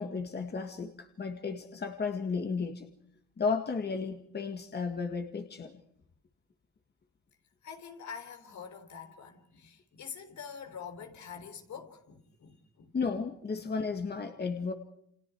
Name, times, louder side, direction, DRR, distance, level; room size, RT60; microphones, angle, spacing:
voice 1, 0.0-2.9 3.4-5.8 12.9-14.7, left 5 dB, 35° left, 2.0 m, -34 dB
voice 2, 7.6-13.0, left 7 dB, 70° left, 3.8 m, -45 dB
29.0 x 26.5 x 4.7 m
cardioid pair, 90°, 30 cm